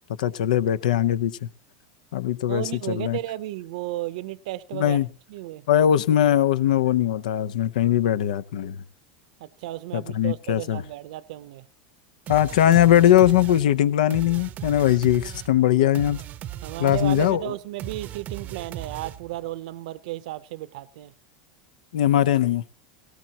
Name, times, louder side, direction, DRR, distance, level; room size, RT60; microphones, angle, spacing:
voice 1, 0.2-1.4 2.1-3.2 4.7-5.1 5.7-8.8 9.9-10.8 12.3-16.2 16.8-17.4 21.9-22.6, left 11 dB, 90° left, 0.8 m, -20 dB
voice 2, 2.5-5.0 5.3-5.7 9.4-11.7 16.6-21.1, right 16 dB, 75° right, 0.6 m, -34 dB
sound 1, 12.3-19.5, right 12 dB, 40° right, 0.6 m, -38 dB
18.0 x 17.5 x 2.9 m
supercardioid pair, 125°, 4 cm